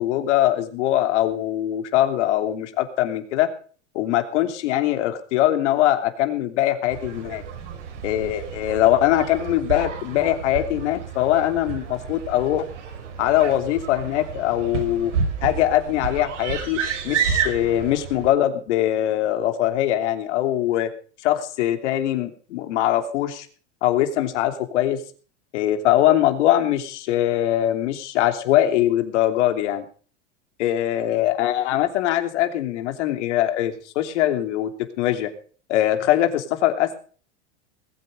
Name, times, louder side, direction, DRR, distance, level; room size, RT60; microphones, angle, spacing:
voice 1, 0.0-3.5 3.9-7.4 8.0-12.6 13.2-15.1 15.4-16.8 17.0-20.9 21.2-23.5 23.8-25.0 25.5-29.8 30.6-34.7 35.0-35.3 35.7-36.9, left 13 dB, 75° left, 7 dB, 3.0 m, -22 dB
sound 1, 6.9-18.3, right 6 dB, 85° right, 5.6 m, -30 dB
20.0 x 9.3 x 6.5 m, 0.43 s
supercardioid pair, 115°, 35 cm